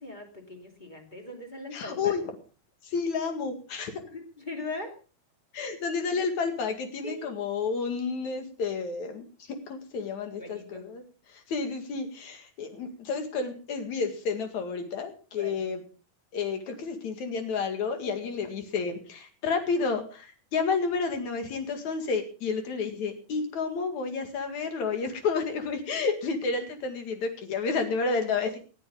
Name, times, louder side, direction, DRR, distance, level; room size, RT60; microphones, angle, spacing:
voice 1, 0.0-2.1 4.1-5.0 5.6-5.7 6.1-6.2 7.0-7.5 10.3-10.9 15.4-15.6, left 2 dB, 15° left, 3 dB, 2.0 m, -40 dB
voice 2, 1.7-2.2 2.8-4.0 5.5-11.0 11.3-15.8 16.3-28.6, left 4 dB, 55° left, 6 dB, 3.1 m, -30 dB
19.5 x 12.0 x 3.8 m, 0.36 s
omnidirectional pair, 4.3 m